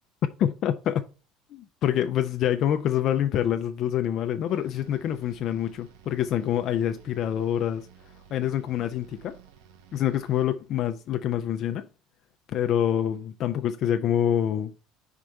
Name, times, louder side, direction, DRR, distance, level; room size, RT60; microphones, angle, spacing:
voice 1, 0.4-1.1 1.5-7.9 8.3-9.4 9.9-11.9 12.5-14.7, left 10 dB, 45° left, 0.5 m, -26 dB
sound 1, 4.5-10.8, right 8 dB, 90° right, 0.8 m, -54 dB
4.8 x 4.5 x 5.2 m
cardioid pair, 145°, 0 cm